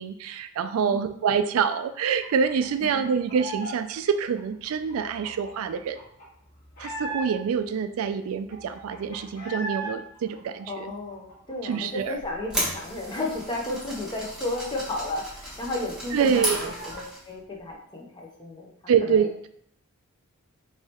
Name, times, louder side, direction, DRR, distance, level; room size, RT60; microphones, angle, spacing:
voice 1, 0.0-6.0 6.8-10.9 11.6-12.2 16.1-16.7 18.9-19.5, right 7 dB, 70° right, 10 dB, 0.3 m, -26 dB
sound 1, 2.2-3.8 4.1-7.6 8.0-8.1 8.3-9.9 10.3-12.0 12.3-12.4 12.7-15.2 15.4-15.5 15.9-17.0, right 2 dB, 40° left, 1.6 m, -39 dB
voice 2, 10.7-18.7 19.0-19.3, left 2 dB, 20° left, -1 dB, 0.7 m, -33 dB
sound 2, 12.2-17.3, right 1 dB, 5° right, 1.0 m, -34 dB
4.7 x 3.2 x 2.9 m, 0.68 s
head